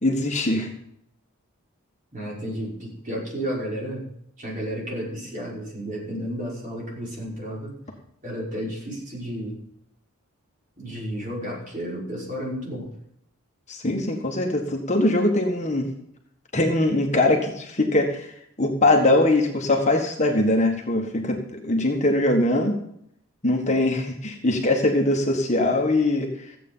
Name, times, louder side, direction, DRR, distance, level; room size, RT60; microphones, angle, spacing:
voice 1, 0.0-0.7 13.7-15.9 16.5-22.7 23.4-26.5, left 2 dB, 30° left, 1 dB, 1.5 m, -22 dB
voice 2, 2.1-4.0 4.4-7.7 8.2-9.6 10.8-12.9, equal, 35° right, -5 dB, 5.6 m, -32 dB
15.0 x 8.4 x 5.6 m, 0.72 s
head